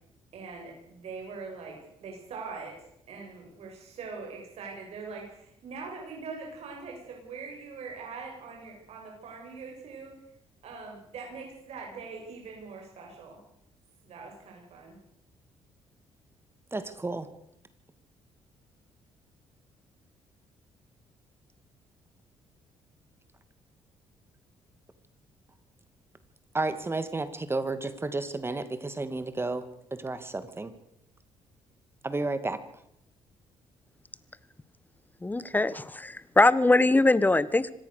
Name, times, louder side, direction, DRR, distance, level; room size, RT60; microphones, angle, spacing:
voice 1, 0.3-10.2 10.6-13.4 14.0-15.0, right 4 dB, 65° right, 0 dB, 7.5 m, -42 dB
voice 2, 16.7-17.3 26.5-29.6 29.9-30.7 32.0-32.6, right 2 dB, 20° right, 11 dB, 2.4 m, -32 dB
voice 3, 35.2-37.7, left 2 dB, 15° left, 17 dB, 1.4 m, -22 dB
25.5 x 18.0 x 6.9 m, 0.76 s
cardioid pair, 80°, 11 cm